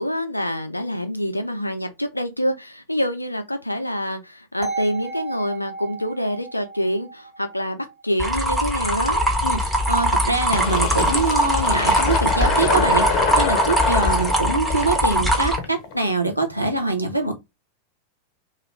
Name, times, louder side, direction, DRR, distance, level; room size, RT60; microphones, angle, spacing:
voice 1, 0.0-9.3, equal, 85° left, 0.5 m, -26 dB
sound 1, 4.6-8.6, right 4 dB, 30° right, 1.0 m, -34 dB
sound 2, 8.2-15.6, right 1 dB, 5° right, 0.8 m, -21 dB
voice 2, 9.4-17.3, right 2 dB, 90° right, 0.6 m, -24 dB
Fill (with liquid), 10.5-15.9, left 6 dB, 40° left, 0.6 m, -26 dB
2.4 x 2.3 x 3.1 m
figure-of-eight pair, 90°, 0 cm